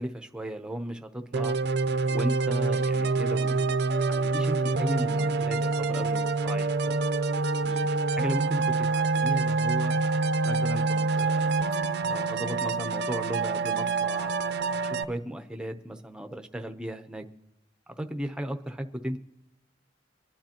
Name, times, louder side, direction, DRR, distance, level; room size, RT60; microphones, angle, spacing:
voice 1, 0.0-1.6 2.1-3.7 4.0-7.1 7.6-7.9 8.2-10.0 10.4-17.2 17.9-19.2, equal, 5° right, 6 dB, 0.7 m, -36 dB
sound 1, 1.3-15.0, right 3 dB, 65° right, 0.5 m, -26 dB
25.0 x 10.5 x 2.9 m, 0.91 s
head